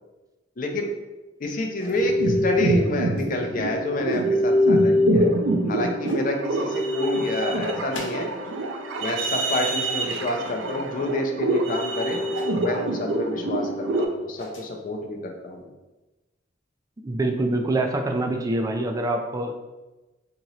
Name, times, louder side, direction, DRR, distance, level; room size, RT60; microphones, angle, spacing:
voice 1, 0.6-0.9 1.4-5.3 5.7-8.4 9.0-12.2 12.6-15.7, left 2 dB, 45° left, 2 dB, 0.5 m, -29 dB
sound 1, 1.8-2.3 3.2-3.3 3.8-4.3 5.3-5.4 6.0-6.3 7.9-8.6 8.9-9.3 10.4-10.6 12.3-12.6 14.0-14.7, left 2 dB, 85° left, 0.7 m, -42 dB
sound 2, 1.9-14.1, equal, 80° right, 0.5 m, -24 dB
voice 2, 17.0-19.5, right 2 dB, 20° right, 4 dB, 0.3 m, -25 dB
3.0 x 2.9 x 3.9 m, 1.1 s
head